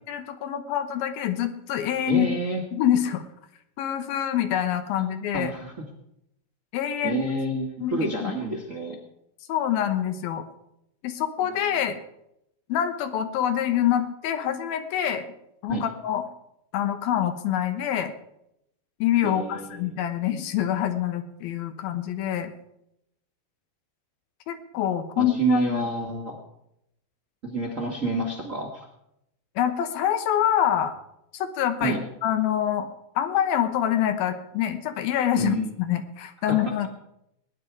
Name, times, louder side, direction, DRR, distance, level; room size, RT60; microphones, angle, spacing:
voice 1, 0.1-2.3 2.7-3.2 3.8-5.5 6.7-7.2 7.8-8.3 9.5-10.4 11.0-12.0 12.7-15.3 15.6-16.2 16.7-18.1 19.0-22.5 24.5-25.9 29.6-30.9 31.3-32.9 33.2-36.9, left 10 dB, 80° left, 8 dB, 2.9 m, -26 dB
voice 2, 2.1-2.6 5.3-5.7 7.0-9.0 11.4-11.8 15.7-15.8 19.2-19.9 25.2-26.3 27.4-28.9 31.8-32.0 35.4-35.7 36.4-36.6, right 2 dB, 40° right, 0 dB, 1.1 m, -29 dB
20.0 x 9.9 x 4.7 m, 0.80 s
omnidirectional pair, 4.2 m